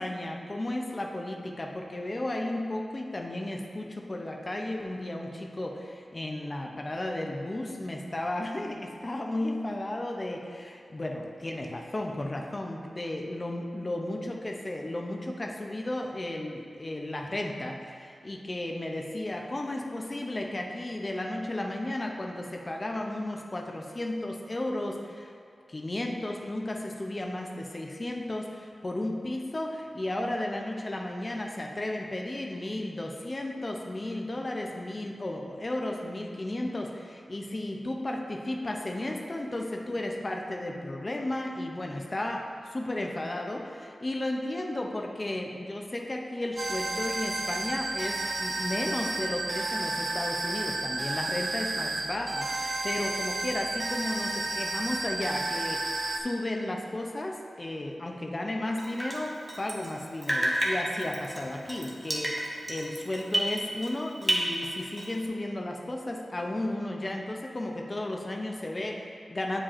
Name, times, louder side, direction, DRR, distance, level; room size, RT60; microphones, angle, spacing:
voice 1, 0.0-25.3 25.7-69.6, left 1 dB, 25° left, 1 dB, 0.5 m, -34 dB
sound 1, 46.6-56.2, right 2 dB, 40° right, 0.4 m, -32 dB
Drip, 58.8-60.0 60.2-64.0 64.2-65.2, right 1 dB, 10° right, 0.7 m, -31 dB
8.8 x 4.8 x 2.5 m, 2.3 s
wide cardioid pair, 135°, 0 cm